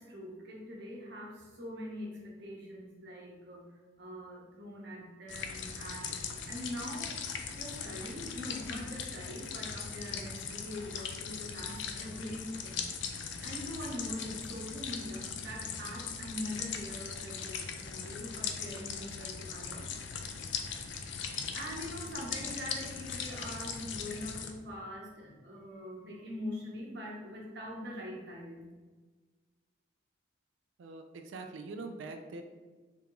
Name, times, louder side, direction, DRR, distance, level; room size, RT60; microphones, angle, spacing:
voice 1, 0.0-3.7 4.0-7.2 7.5-12.8 13.1-19.8 21.1-28.7, left 1 dB, 55° right, -2 dB, 0.9 m, -43 dB
sound 1, 5.3-24.5, left 6 dB, 65° left, 0.4 m, -40 dB
voice 2, 30.8-32.4, right 3 dB, 75° right, 6 dB, 0.4 m, -43 dB
3.5 x 2.9 x 3.7 m, 1.4 s
head